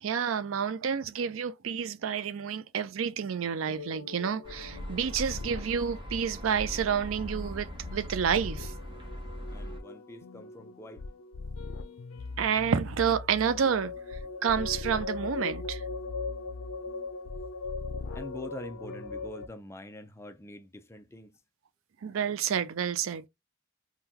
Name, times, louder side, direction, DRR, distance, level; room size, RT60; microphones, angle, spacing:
voice 1, 0.0-8.7 12.4-15.8 22.0-23.3, right 7 dB, 85° right, 0.4 m, -29 dB
sound 1, 3.7-19.5, left 3 dB, 90° left, 0.5 m, -39 dB
sound 2, 4.4-9.8, equal, 25° right, 0.9 m, -40 dB
voice 2, 9.5-11.0 16.2-16.3 18.1-21.4, left 1 dB, 15° left, 0.4 m, -45 dB
3.7 x 2.2 x 2.8 m
head